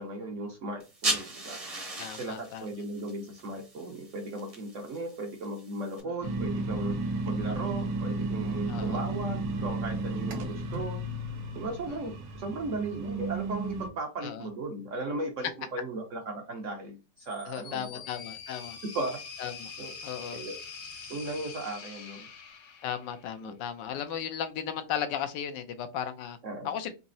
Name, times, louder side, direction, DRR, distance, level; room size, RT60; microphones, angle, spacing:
voice 1, 0.0-1.6 2.1-7.0 7.2-11.0 11.5-17.8 18.9-19.2 19.8-19.9 20.3-20.6 21.1-22.3 23.4-23.5 26.4-26.7, right 2 dB, 60° right, 3 dB, 0.9 m, -36 dB
sound 1, 0.8-6.0, right 2 dB, 30° right, 0.7 m, -37 dB
voice 2, 2.0-2.7 6.0-6.1 8.7-9.0 11.9-12.1 14.2-14.5 17.5-18.8 19.4-19.7 20.0-20.4 22.8-26.4 26.6-26.9, left 9 dB, 85° left, 9 dB, 1.3 m, -36 dB
sound 2, 6.2-13.9, right 2 dB, 80° right, 1.5 m, -33 dB
sound 3, 17.2-23.4, left 5 dB, 55° left, 0.9 m, -44 dB
4.1 x 2.7 x 2.6 m, 0.30 s
omnidirectional pair, 1.9 m